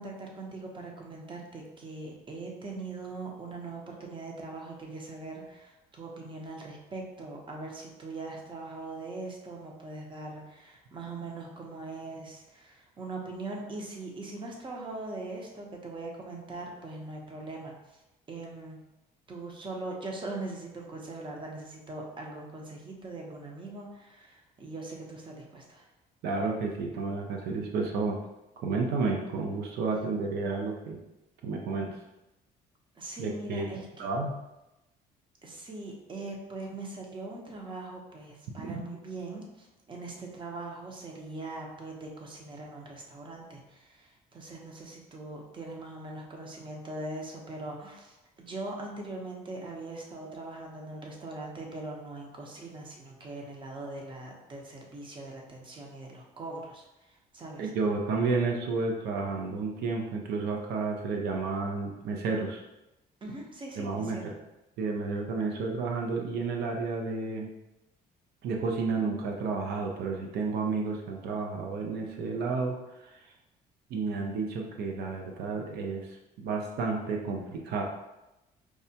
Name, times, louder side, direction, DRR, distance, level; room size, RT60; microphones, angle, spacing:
voice 1, 0.0-18.0 18.3-18.8 19.3-25.9 32.9-34.1 35.4-57.7 63.2-64.3, right 2 dB, 30° right, 0 dB, 0.7 m, -41 dB
voice 2, 26.2-28.2 28.6-31.0 31.4-31.9 33.2-33.7 34.0-34.3 57.6-62.6 63.8-64.2 64.8-67.5 68.4-73.3 73.9-77.8, right 4 dB, 75° right, 1 dB, 0.5 m, -31 dB
4.7 x 2.2 x 2.7 m, 0.97 s
cardioid pair, 110°, 17 cm